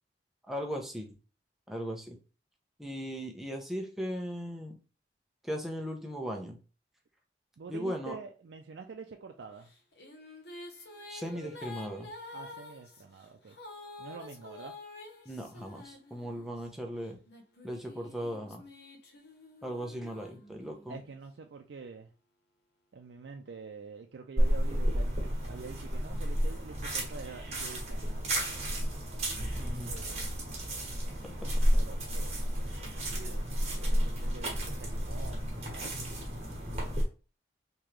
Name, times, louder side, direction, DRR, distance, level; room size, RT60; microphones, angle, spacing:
voice 1, 0.5-1.1 1.7-2.2 2.8-4.8 5.4-6.6 7.7-8.2 11.1-12.1 15.3-17.2 17.6-18.6 19.6-21.0 29.6-29.9 31.2-31.6, equal, ahead, 1 dB, 0.6 m, -38 dB
voice 2, 7.6-9.7 11.3-11.5 12.3-13.6 14.0-14.8 20.9-22.1 22.9-29.0 29.8-30.4 31.7-36.3, right 4 dB, 85° right, 4 dB, 0.4 m, -47 dB
sound 1, 9.7-16.6 17.3-21.0, left 2 dB, 70° left, 0.8 m, -48 dB
sound 2, 24.4-37.0, equal, 40° right, 1.3 m, -31 dB
3.6 x 2.9 x 3.1 m, 0.35 s
head